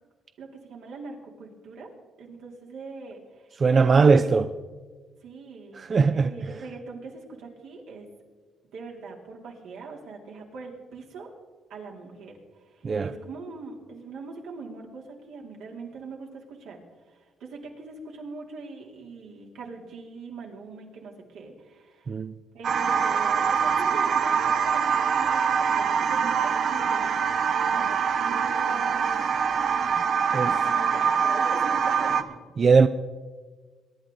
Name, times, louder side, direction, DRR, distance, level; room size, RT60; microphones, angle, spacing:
voice 1, 0.4-1.9 2.2-3.6 4.0-4.3 5.2-8.1 8.7-11.3 11.7-16.8 17.1-22.1 22.5-27.1 27.7-29.1 30.3-32.4, right 4 dB, 85° right, 2.9 m, -42 dB
voice 2, 3.6-4.5 5.7-6.6 12.8-13.1 22.1-22.3 30.3-30.5 32.6-32.9, right 4 dB, 40° right, 0.5 m, -20 dB
sound 1, 22.6-32.2, right 6 dB, 60° right, 0.8 m, -24 dB
23.0 x 10.5 x 3.8 m
cardioid pair, 90°, 0 cm